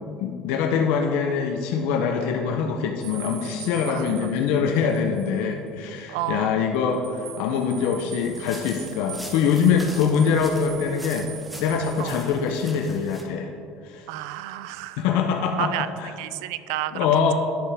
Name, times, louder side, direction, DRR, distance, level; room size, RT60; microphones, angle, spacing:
voice 1, 0.2-11.3 11.6-13.5 13.8-14.1 15.0-15.7 16.0-16.1 16.9-17.3, left 6 dB, 70° left, 3 dB, 0.6 m, -23 dB
sound 1, 3.0-5.4 5.7-5.8 6.7-12.4, right 9 dB, 60° right, 0.9 m, -42 dB
voice 2, 3.9-4.2 6.1-6.6 12.0-12.2 14.1-15.0 15.6-15.9 16.2-17.1, right 14 dB, 85° right, 14 dB, 0.3 m, -31 dB
sound 2, 8.2-13.2, equal, ahead, 0.9 m, -43 dB
10.5 x 6.7 x 3.4 m, 2.5 s
cardioid pair, 150°, 2 cm